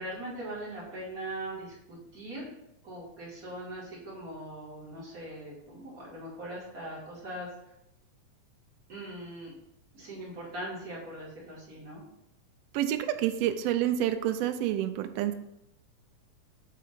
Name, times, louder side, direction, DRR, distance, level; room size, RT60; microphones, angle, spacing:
voice 1, 0.0-2.5 2.8-7.5 8.9-9.5 9.9-12.0, right 1 dB, 30° right, -6 dB, 2.7 m, -40 dB
voice 2, 12.7-15.3, right 11 dB, 85° right, 9 dB, 1.4 m, -28 dB
8.5 x 3.7 x 5.1 m, 0.86 s
omnidirectional pair, 3.3 m